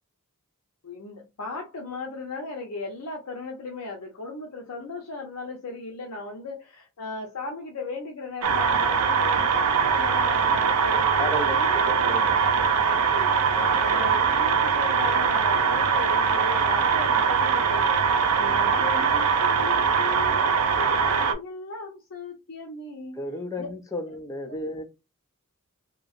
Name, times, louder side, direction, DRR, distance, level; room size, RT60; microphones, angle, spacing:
voice 1, 0.8-18.0 18.4-23.2 23.6-23.7 24.4-24.8, left 3 dB, 75° left, 0.6 m, -37 dB
sound 1, 8.4-21.3, right 6 dB, 90° right, 0.5 m, -22 dB
voice 2, 11.2-12.3 13.5-13.8 23.2-24.8, left 1 dB, 15° left, 0.5 m, -33 dB
2.9 x 2.7 x 2.4 m
head